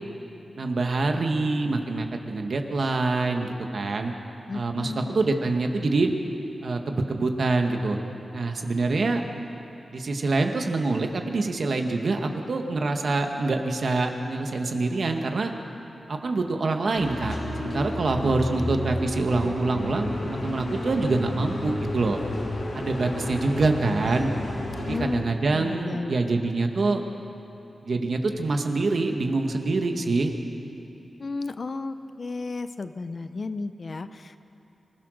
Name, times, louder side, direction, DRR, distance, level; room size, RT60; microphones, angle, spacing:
voice 1, 0.6-4.1 4.5-6.1 6.6-8.0 8.3-9.2 9.9-15.5 16.1-22.2 22.7-24.3 24.9-27.0 27.8-30.3, right 3 dB, 60° right, 4 dB, 1.7 m, -25 dB
voice 2, 4.5-5.1 18.2-18.9 24.9-26.3 31.2-34.4, left 3 dB, 50° left, 11 dB, 0.7 m, -34 dB
sound 1, 17.0-25.0, left 1 dB, 75° left, 4.0 m, -32 dB
25.5 x 16.0 x 6.6 m, 3.0 s
wide cardioid pair, 100°, 0 cm